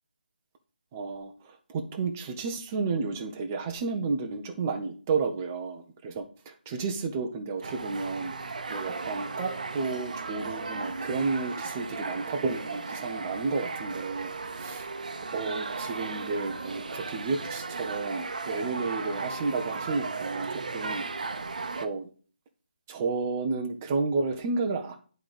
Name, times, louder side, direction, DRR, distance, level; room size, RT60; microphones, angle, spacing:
voice 1, 0.9-8.3 8.7-14.9 15.3-21.0 21.7-22.1 22.9-25.0, right 4 dB, 15° right, 4 dB, 0.5 m, -32 dB
sound 1, 7.6-21.9, right 4 dB, 50° right, 0.8 m, -36 dB
10.5 x 3.8 x 4.8 m, 0.40 s
hypercardioid pair, 175°, 5 cm